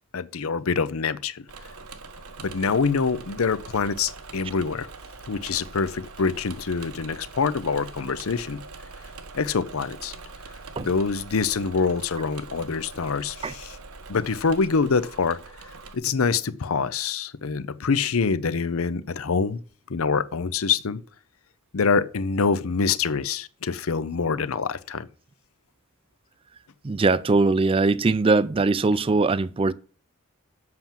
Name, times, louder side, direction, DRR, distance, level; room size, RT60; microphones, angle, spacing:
voice 1, 0.1-1.4 2.4-4.9 5.3-8.6 9.3-10.1 10.8-13.8 14.1-15.4 15.9-19.6 19.9-21.0 21.7-25.1, left 5 dB, 75° left, 0.6 m, -25 dB
Engine / Mechanisms, 1.5-16.0, right 4 dB, 85° right, 1.2 m, -43 dB
voice 2, 26.8-29.7, right 3 dB, 25° right, 0.4 m, -21 dB
7.8 x 5.9 x 7.3 m
head